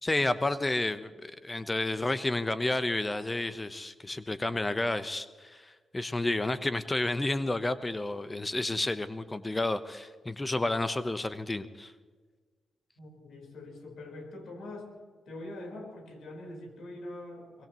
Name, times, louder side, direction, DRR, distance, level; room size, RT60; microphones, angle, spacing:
voice 1, 0.0-11.9, left 2 dB, 25° left, 12 dB, 0.9 m, -31 dB
voice 2, 13.0-14.9 15.3-17.7, left 1 dB, 70° left, 2 dB, 4.4 m, -43 dB
23.5 x 20.0 x 3.1 m, 1.5 s
hypercardioid pair, 40°, 0 cm